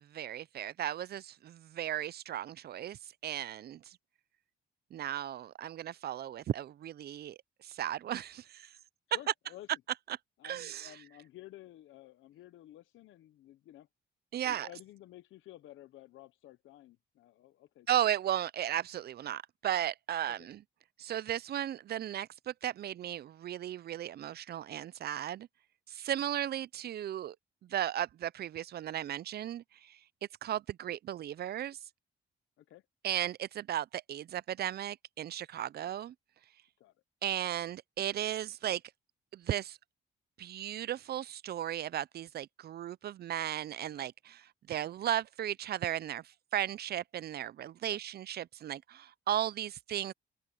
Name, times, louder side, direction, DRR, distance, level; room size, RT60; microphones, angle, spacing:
voice 1, 0.0-4.0 4.9-8.7 10.1-10.2 10.4-10.9 14.3-14.7 17.9-20.6 21.0-25.5 25.9-27.4 27.6-30.0 30.4-31.8 33.0-36.1 37.2-38.8 39.3-39.8 40.4-50.1, right 11 dB, 55° right, 0.5 m, -36 dB
voice 2, 9.1-9.7 10.4-13.9 14.4-17.9 20.3-20.5 32.6-32.8 35.8-35.9 36.8-36.9 47.9-48.0, left 14 dB, 80° left, 0.8 m, -53 dB
open air
cardioid pair, 90°, 20 cm